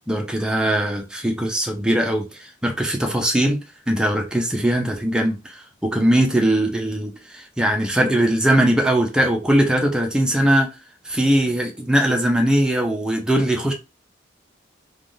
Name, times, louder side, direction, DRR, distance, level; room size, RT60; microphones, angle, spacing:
voice 1, 0.1-10.7 11.0-13.7, right 1 dB, 5° right, 0.5 m, -20 dB
3.4 x 2.2 x 2.6 m
head